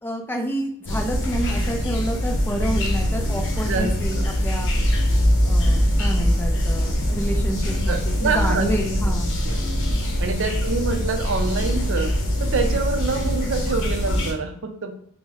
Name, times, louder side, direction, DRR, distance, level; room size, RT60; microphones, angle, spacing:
voice 1, 0.0-4.7 5.4-9.3 10.5-10.6, equal, 10° left, 1 dB, 0.4 m, -29 dB
sound 1, 0.9-14.3, equal, 55° left, 0.8 m, -22 dB
voice 2, 3.7-4.2 7.9-8.8 9.4-9.6 10.2-12.1 12.4-14.9, right 4 dB, 60° right, 6 dB, 0.4 m, -26 dB
3.4 x 2.0 x 3.3 m, 0.66 s
head